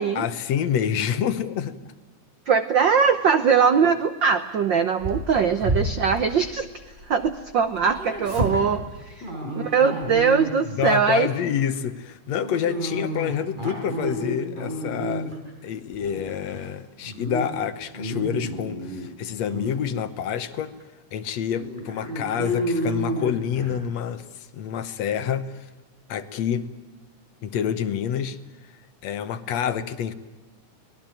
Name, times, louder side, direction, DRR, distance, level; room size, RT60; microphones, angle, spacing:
voice 1, 0.2-1.7 10.8-15.3 15.6-20.7 21.1-25.7 26.1-26.6 27.4-28.4 29.0-30.1, left 8 dB, 65° left, 12 dB, 2.2 m, -27 dB
voice 2, 2.5-6.7 7.1-9.1 9.5-11.3, right 6 dB, 70° right, 11 dB, 1.0 m, -21 dB
Dog, 5.0-7.3 7.6-10.9 11.3-11.6 12.4-15.5 15.9-16.7 17.0-17.5 17.8-19.1 19.5-19.7 20.4-20.5 20.8-20.9 21.5-23.8, equal, 15° right, 4.8 m, -30 dB
24.0 x 19.5 x 9.0 m, 1.1 s
omnidirectional pair, 3.5 m